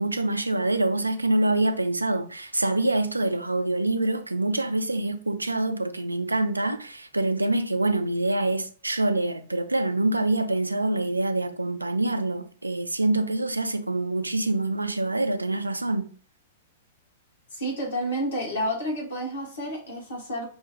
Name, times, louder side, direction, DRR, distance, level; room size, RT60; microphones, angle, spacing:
voice 1, 0.0-16.1, right 2 dB, 80° right, 0.4 m, -25 dB
voice 2, 17.5-20.5, equal, 65° left, 1.4 m, -30 dB
5.4 x 2.2 x 3.0 m
figure-of-eight pair, 100°, 0 cm